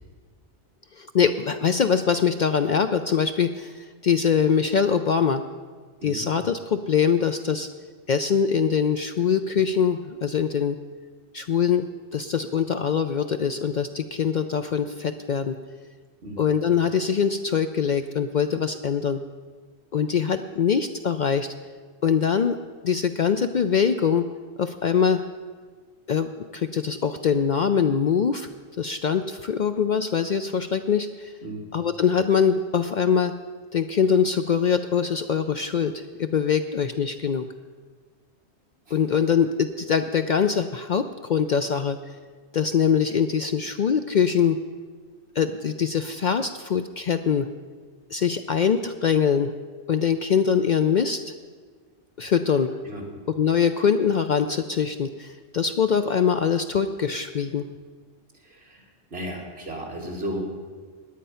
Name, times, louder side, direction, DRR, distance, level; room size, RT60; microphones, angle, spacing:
voice 1, 1.0-5.4 6.0-7.7 8.1-10.8 11.3-11.8 12.1-15.6 16.4-19.2 19.9-21.5 22.0-22.6 22.8-24.3 24.6-25.2 26.1-28.5 28.8-31.3 31.7-33.3 33.7-37.4 38.9-42.0 42.5-44.6 45.4-47.5 48.1-49.5 49.9-51.2 52.2-52.7 53.4-57.7, left 7 dB, 55° left, 9 dB, 0.6 m, -23 dB
voice 2, 58.4-58.8 59.1-60.4, right 1 dB, 65° right, -2 dB, 3.0 m, -34 dB
17.0 x 10.5 x 5.6 m, 1.5 s
omnidirectional pair, 1.1 m